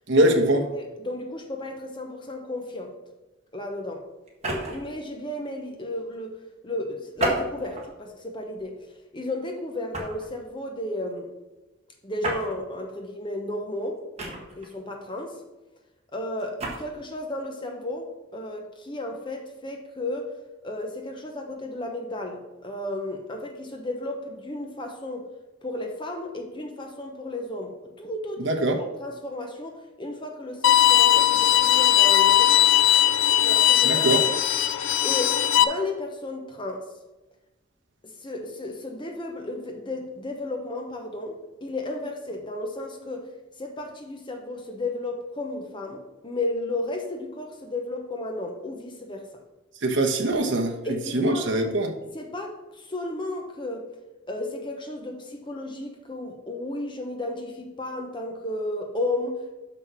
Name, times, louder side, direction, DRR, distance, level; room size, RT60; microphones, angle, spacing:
voice 1, 0.1-0.6 28.4-28.8 33.8-34.2 49.8-50.7 51.1-51.9, right 1 dB, 60° right, 3 dB, 1.1 m, -22 dB
voice 2, 0.7-2.9 3.5-4.1 4.6-6.4 6.6-8.8 9.1-11.3 12.0-15.4 16.1-20.3 20.6-25.3 25.6-28.5 28.7-32.8 33.4-34.0 35.0-36.9 38.0-43.3 43.6-49.3 50.8-51.7 52.1-53.9 54.3-59.5, left 2 dB, 25° left, 2 dB, 0.9 m, -33 dB
sound 1, 4.3-4.9 7.1-7.9 8.5-8.8 9.9-10.3 12.2-12.5 14.2-14.7 16.4-16.8, right 2 dB, 30° right, 1.6 m, -30 dB
Bowed string instrument, 30.6-35.6, left 13 dB, 70° left, 0.5 m, -19 dB
6.2 x 5.9 x 6.1 m, 1.0 s
head